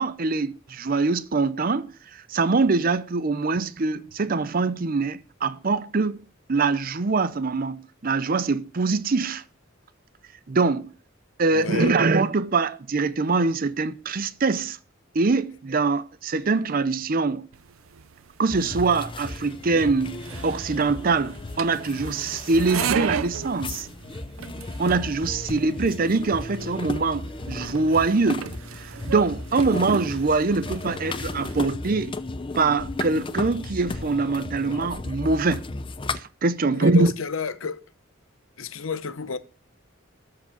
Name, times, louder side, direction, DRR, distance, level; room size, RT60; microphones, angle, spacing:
voice 1, 0.0-9.4 10.5-10.9 11.4-14.8 15.1-17.5 18.4-23.9 24.8-28.5 28.8-32.1 32.6-35.6 36.1-37.1, right 3 dB, 45° right, 0.6 m, -24 dB
voice 2, 11.5-11.9 36.7-37.8 38.6-39.4, left 5 dB, 80° left, 0.8 m, -30 dB
sound 1, 17.5-31.7, right 7 dB, 90° right, 0.5 m, -36 dB
sound 2, 18.5-36.2, left 2 dB, 25° left, 0.6 m, -35 dB
13.0 x 4.9 x 5.8 m
head